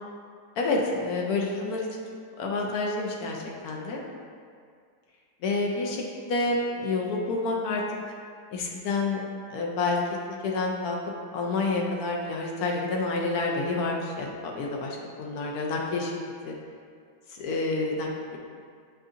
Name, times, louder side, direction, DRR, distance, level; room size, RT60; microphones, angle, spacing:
voice 1, 0.6-1.9 2.4-4.0 5.4-7.8 8.5-9.2 9.5-10.0 10.4-11.0 11.3-16.1 16.5-16.6 17.3-18.4, left 3 dB, 70° left, -1 dB, 1.0 m, -28 dB
7.3 x 2.6 x 2.5 m, 2.1 s
omnidirectional pair, 1.8 m